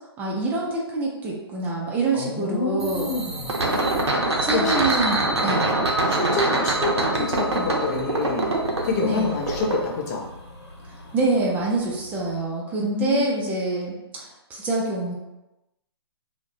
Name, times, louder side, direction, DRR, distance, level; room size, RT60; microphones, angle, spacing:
voice 1, 0.2-3.1 4.4-5.7 9.0-9.3 11.1-15.1, right 2 dB, 10° right, -3 dB, 0.4 m, -26 dB
voice 2, 2.1-3.7 4.2-4.8 5.1-5.6 6.1-8.5 8.8-10.3 12.8-13.5, left 3 dB, 40° left, -1 dB, 0.6 m, -28 dB
sound 1, 2.8-9.8, right 2 dB, 80° right, 0.5 m, -24 dB
sound 2, 7.5-12.4, left 1 dB, 90° left, 0.8 m, -44 dB
2.4 x 2.1 x 2.6 m, 0.97 s
figure-of-eight pair, 130°, 14 cm